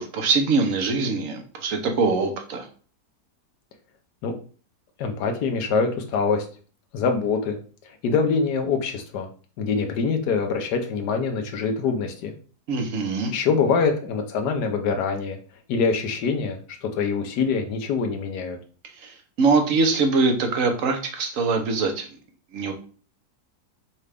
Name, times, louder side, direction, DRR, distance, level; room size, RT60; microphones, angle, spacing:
voice 1, 0.0-2.7 12.7-13.3 19.0-22.1 22.5-22.7, right 4 dB, 55° right, 4 dB, 1.1 m, -23 dB
voice 2, 5.0-6.4 6.9-7.6 8.0-9.3 9.6-12.3 13.3-15.4 15.7-18.6, left 5 dB, 75° left, 4 dB, 1.3 m, -24 dB
5.5 x 2.5 x 3.3 m, 0.40 s
omnidirectional pair, 1.8 m